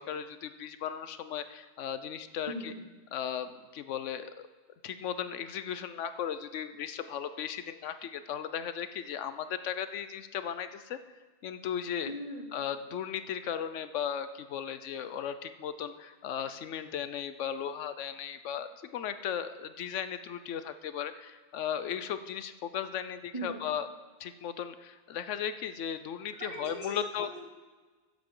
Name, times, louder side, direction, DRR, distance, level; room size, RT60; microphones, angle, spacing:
voice 1, 0.0-2.7 3.1-4.3 4.8-11.0 11.4-12.1 12.5-23.9 24.2-27.3, left 8 dB, 80° left, 11 dB, 1.0 m, -36 dB
voice 2, 2.5-2.8 12.1-12.5 23.3-23.6 26.4-27.4, right 1 dB, 30° right, -3 dB, 2.7 m, -39 dB
13.5 x 10.0 x 3.8 m, 1.3 s
omnidirectional pair, 1.2 m